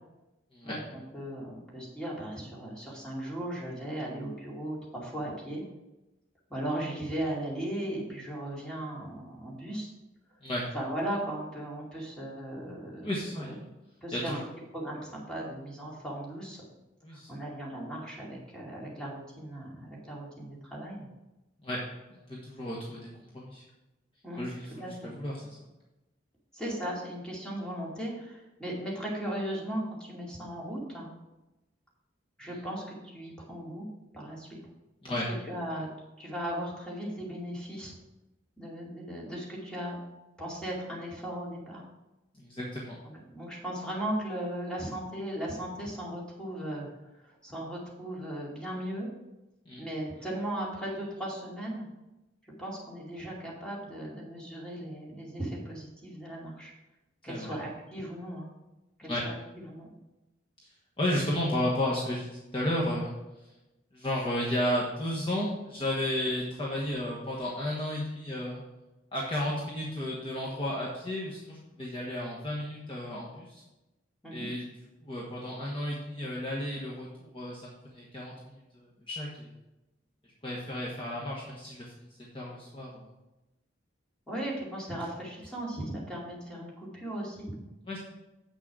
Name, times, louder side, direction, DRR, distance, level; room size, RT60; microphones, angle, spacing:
voice 1, 0.6-5.6 6.5-9.9 10.7-13.5 14.0-14.4 14.7-16.6 17.1-21.1 24.2-24.4 24.8-25.1 26.5-31.1 32.4-33.9 34.1-34.5 35.1-35.9 36.2-37.9 38.6-40.0 40.4-41.8 43.0-46.9 47.1-49.1 49.8-51.8 52.6-56.7 57.2-58.5 59.0-59.4 59.6-59.9 74.2-74.5 84.3-87.5, right 1 dB, 5° left, -5 dB, 2.4 m, -37 dB
voice 2, 13.0-13.7 14.1-14.4 17.0-17.4 21.6-21.8 22.1-23.6 24.4-25.6 35.0-35.3 42.4-43.0 49.6-49.8 57.3-57.5 59.0-59.2 61.0-63.1 63.9-68.6 69.1-73.6 74.3-74.6 75.0-79.5 80.4-81.9 82.3-83.1 87.9-88.0, left 1 dB, 30° left, -5 dB, 1.3 m, -33 dB
7.9 x 6.3 x 4.8 m, 0.99 s
head